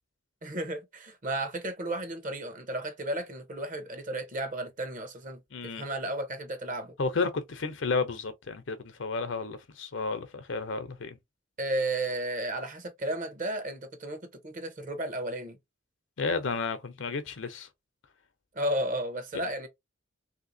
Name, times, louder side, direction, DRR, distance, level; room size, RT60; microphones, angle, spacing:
voice 1, 0.4-5.4 5.7-6.9 11.6-15.6 18.5-19.7, right 1 dB, 45° right, 0.9 m, -33 dB
voice 2, 5.5-5.9 7.0-11.2 16.2-17.7, left 4 dB, 70° left, 0.7 m, -32 dB
3.3 x 2.8 x 2.7 m
head